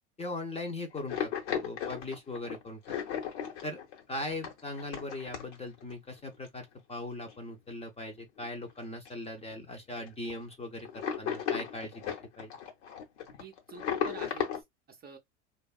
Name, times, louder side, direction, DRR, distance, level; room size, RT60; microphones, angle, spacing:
voice 1, 0.2-2.9 3.6-3.8 4.1-12.0 12.4-12.6, left 2 dB, 20° left, 0.6 m, -39 dB
sound 1, 0.9-5.9 6.3-6.5 7.2-7.3 7.7-7.8 8.2-8.7 9.0-9.1 9.4-9.5 9.9-10.3 10.8-14.6, left 8 dB, 75° left, 1.0 m, -35 dB
voice 2, 13.4-15.2, right 6 dB, 25° right, 0.6 m, -49 dB
2.5 x 2.3 x 2.3 m
hypercardioid pair, 85°, 35 cm